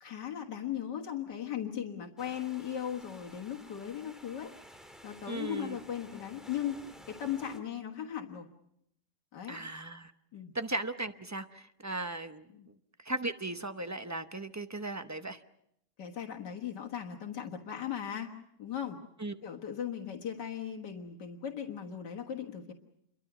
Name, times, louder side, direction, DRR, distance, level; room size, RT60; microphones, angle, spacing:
voice 1, 0.0-4.5 5.0-6.8 7.1-8.5 9.3-9.6 10.3-10.6 12.5-12.7 16.0-18.3 18.6-19.0 19.4-22.7, left 9 dB, 80° left, 2 dB, 2.1 m, -38 dB
sound 1, 2.2-7.6, equal, ahead, 1.9 m, -53 dB
voice 2, 5.3-5.8 9.5-10.1 10.5-12.4 13.1-15.4 19.2-19.4, right 2 dB, 25° right, 9 dB, 0.4 m, -37 dB
28.5 x 23.0 x 6.0 m, 0.76 s
omnidirectional pair, 1.8 m